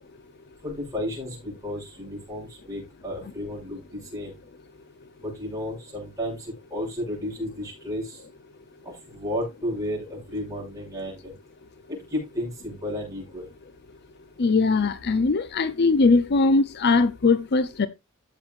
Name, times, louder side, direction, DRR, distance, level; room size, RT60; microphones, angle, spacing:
voice 1, 0.6-4.3 5.2-6.4 6.7-8.2 9.1-11.3 11.9-13.4, left 1 dB, 15° right, 6.7 m, -32 dB
voice 2, 14.4-17.9, left 3 dB, 50° left, 0.6 m, -20 dB
14.5 x 7.1 x 2.5 m
head